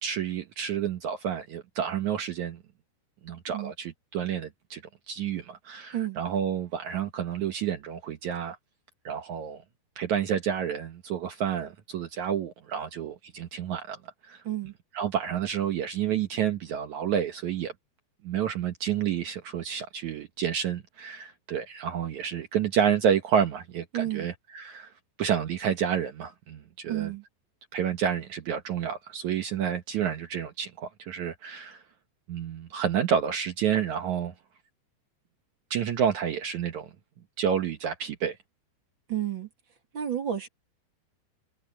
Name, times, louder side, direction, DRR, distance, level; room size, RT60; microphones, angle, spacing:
voice 1, 0.0-2.6 3.2-4.8 5.1-8.6 9.0-9.6 10.0-14.0 14.2-14.4 14.9-17.7 18.2-24.9 25.2-27.1 27.7-31.8 32.3-34.3 35.7-36.9 37.4-38.4, right 8 dB, 75° right, 1.7 m, -29 dB
voice 2, 14.4-14.7 23.9-24.3 26.9-27.2 39.1-39.5 39.9-40.5, right 11 dB, 35° right, 2.5 m, -31 dB
omnidirectional pair, 5.0 m